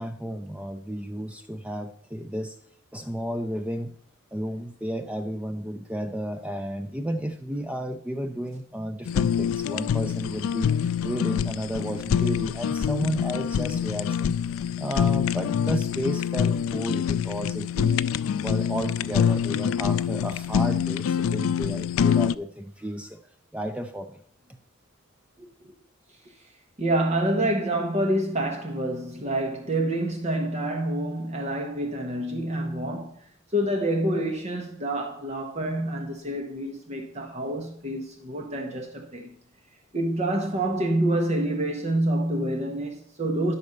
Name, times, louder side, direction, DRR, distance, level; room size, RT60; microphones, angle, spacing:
voice 1, 0.0-2.6 2.9-3.9 4.3-14.4 14.8-18.1 18.4-23.2 23.5-24.2, equal, 5° right, 0.4 m, -32 dB
Fire, 9.1-22.3, left 8 dB, 85° left, 0.3 m, -25 dB
voice 2, 26.8-33.1 33.5-39.3 39.9-43.5, right 1 dB, 35° right, 0.9 m, -27 dB
11.0 x 4.2 x 6.5 m
head